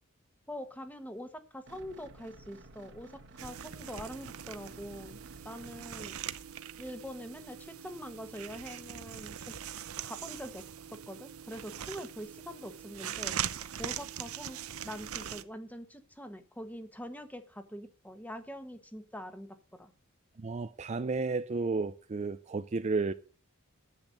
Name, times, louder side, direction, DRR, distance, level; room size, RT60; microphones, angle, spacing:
voice 1, 0.5-6.2 6.8-9.5 10.0-10.6 10.9-14.6 14.8-19.9, equal, 5° left, 1.2 m, -44 dB
sound 1, 1.7-6.1, right 2 dB, 55° right, 1.4 m, -54 dB
sound 2, 3.4-15.4, right 9 dB, 75° right, 0.8 m, -41 dB
voice 2, 20.4-23.1, right 3 dB, 30° right, 0.4 m, -32 dB
10.5 x 8.0 x 6.5 m
head